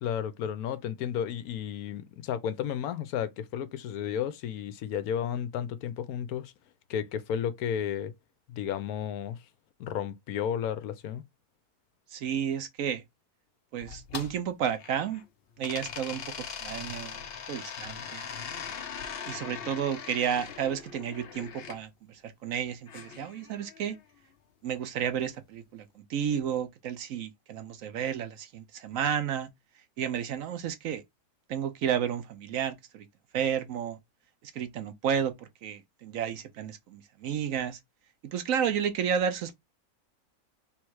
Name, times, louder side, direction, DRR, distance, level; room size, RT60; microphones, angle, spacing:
voice 1, 0.0-6.5 6.9-8.1 8.5-9.4 9.8-11.2, left 9 dB, 75° left, 1.1 m, -33 dB
voice 2, 12.1-13.0 13.7-15.2 15.6-17.2 17.5-18.3 19.3-24.0 24.6-29.5 30.0-31.0 31.5-33.1 33.3-34.0 34.4-37.8 38.2-39.6, right 8 dB, 65° right, 1.0 m, -32 dB
sound 1, 13.8-15.2 15.6-21.8 22.9-24.0, left 7 dB, 55° left, 0.7 m, -41 dB
3.5 x 3.1 x 4.6 m
omnidirectional pair, 1.6 m